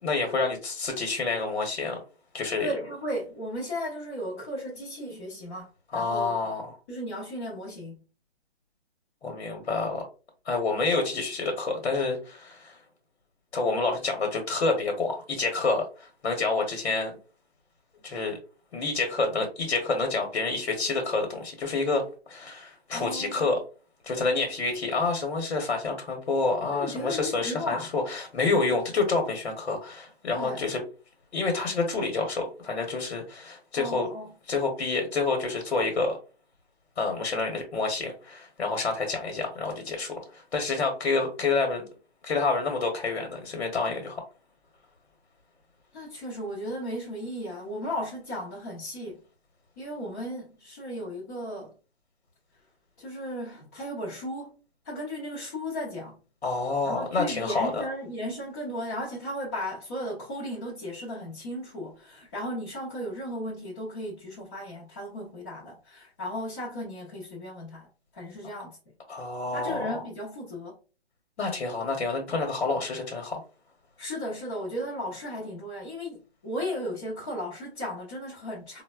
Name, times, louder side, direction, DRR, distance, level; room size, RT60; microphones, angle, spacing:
voice 1, 0.0-2.0 2.3-2.7 5.9-6.7 9.2-10.0 10.5-12.8 13.5-17.1 18.0-18.4 18.7-23.6 24.0-30.8 31.3-34.1 34.5-36.2 37.0-41.8 42.2-44.2 56.4-57.8 69.1-70.0 71.4-73.4, left 3 dB, 75° left, 0.9 m, -28 dB
voice 2, 2.6-6.3 6.9-8.0 22.9-23.5 26.7-27.9 30.3-30.7 33.7-34.3 45.9-49.2 49.8-51.7 53.0-54.5 54.8-56.2 56.8-68.8 69.5-70.8 74.0-78.8, equal, 15° left, 0.5 m, -35 dB
3.8 x 2.1 x 2.3 m
hypercardioid pair, 155°, 32 cm